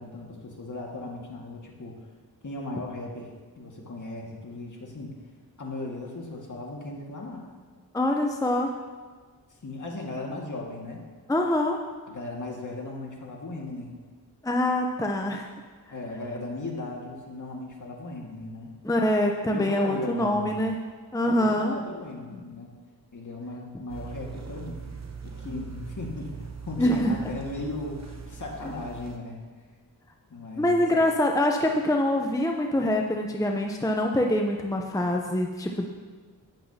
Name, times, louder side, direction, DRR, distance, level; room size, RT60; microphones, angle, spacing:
voice 1, 0.0-2.0 2.4-3.3 3.6-5.1 5.6-7.5 9.6-11.0 12.1-14.0 15.9-18.7 19.5-20.6 21.2-22.7 23.1-24.8 25.2-29.5 30.3-31.0, left 2 dB, 45° left, -1 dB, 2.0 m, -37 dB
voice 2, 7.9-8.7 11.3-11.8 14.4-15.5 18.8-20.8 21.1-21.7 25.5-25.6 26.8-27.2 30.5-35.9, left 1 dB, 10° left, 1 dB, 0.7 m, -24 dB
sound 1, 23.9-29.2, right 5 dB, 40° right, 0.9 m, -40 dB
11.5 x 9.6 x 2.9 m, 1.5 s
cardioid pair, 60°, 41 cm